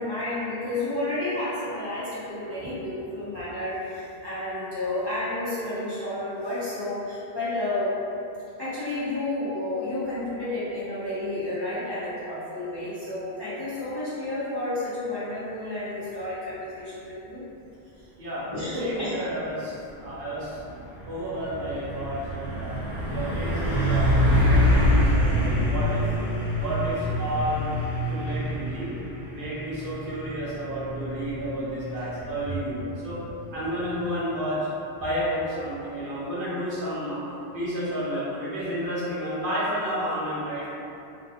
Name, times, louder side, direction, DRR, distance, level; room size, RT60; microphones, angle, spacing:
voice 1, 0.0-8.0 8.6-17.4 18.5-19.1, left 1 dB, 30° left, -14 dB, 0.6 m, -31 dB
voice 2, 18.8-19.7 20.0-20.6 21.0-22.7 23.1-26.0 26.5-27.7 28.1-28.9 29.3-33.2 33.5-34.6 35.0-37.2 37.5-40.7, equal, 60° right, -10 dB, 0.8 m, -31 dB
Truck, 19.9-34.2, equal, 45° left, 1.1 m, -26 dB
2.5 x 2.2 x 2.8 m, 2.8 s
omnidirectional pair, 1.1 m